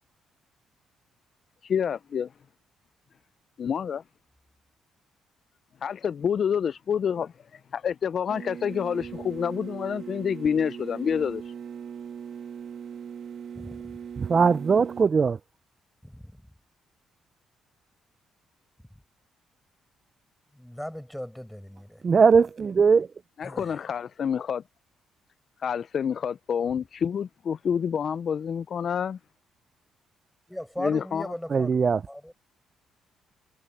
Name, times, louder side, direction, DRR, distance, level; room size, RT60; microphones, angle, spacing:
voice 1, 1.6-2.3 3.6-4.0 5.8-7.3 7.7-11.5 23.4-24.6 25.6-29.2 30.8-31.3, left 7 dB, 55° left, 0.4 m, -28 dB
sound 1, 8.3-15.0, right 7 dB, 60° right, 2.3 m, -39 dB
voice 2, 13.5-14.0 16.0-16.3 20.5-22.0 23.4-23.8 30.5-32.3, equal, 5° left, 7.5 m, -38 dB
voice 3, 14.2-15.4 22.0-23.1 31.5-32.0, right 5 dB, 40° right, 0.4 m, -20 dB
cardioid pair, 90°, 0 cm